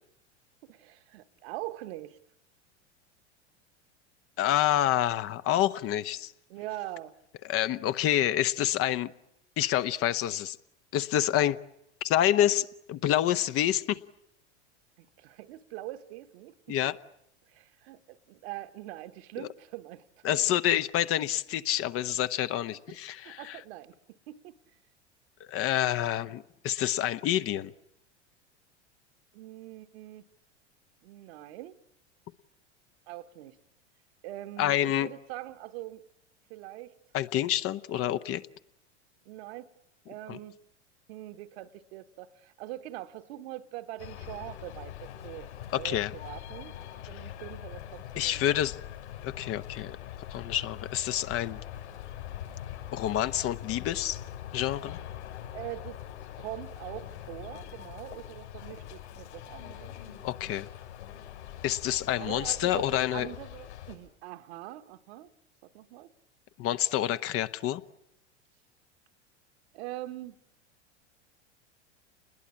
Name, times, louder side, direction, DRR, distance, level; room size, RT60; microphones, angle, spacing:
voice 1, 0.6-2.2 6.5-7.1 15.0-16.8 17.5-20.8 22.9-24.6 29.3-30.3 31.0-31.8 33.1-33.6 34.2-36.0 36.5-36.9 39.2-39.7 40.1-40.6 41.1-46.8 47.1-48.7 55.5-56.0 56.4-60.0 62.1-65.3 65.6-66.1 69.7-70.4, right 15 dB, 60° right, 1.4 m, -43 dB
voice 2, 4.4-6.3 7.4-9.1 9.6-10.6 10.9-11.6 12.0-14.0 16.7-16.9 19.4-19.5 20.2-23.6 25.4-27.7 34.6-35.1 37.1-38.4 40.3-40.4 45.7-46.1 47.2-47.3 48.2-48.8 49.2-50.0 50.3-51.6 52.9-54.2 54.5-55.0 60.2-60.7 61.6-63.3 66.6-67.8, left 12 dB, 40° left, 1.0 m, -28 dB
sound 1, 44.0-63.9, left 11 dB, 70° left, 7.7 m, -43 dB
28.5 x 21.0 x 8.7 m
hypercardioid pair, 90°, 35 cm